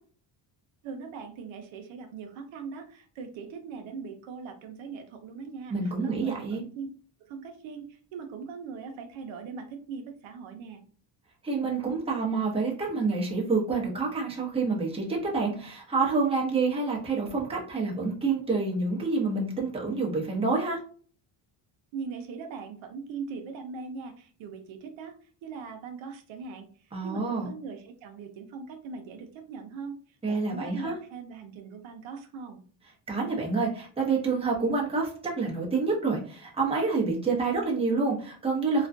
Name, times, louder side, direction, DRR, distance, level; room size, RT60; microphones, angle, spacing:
voice 1, 0.8-6.9 7.3-10.8 21.9-30.0 30.3-32.6, right 5 dB, 80° right, 5 dB, 0.6 m, -40 dB
voice 2, 5.7-6.6 11.4-20.8 26.9-27.5 30.2-30.9 33.1-38.9, right 4 dB, 15° right, -3 dB, 0.7 m, -28 dB
2.4 x 2.2 x 2.5 m, 0.43 s
cardioid pair, 115°, 46 cm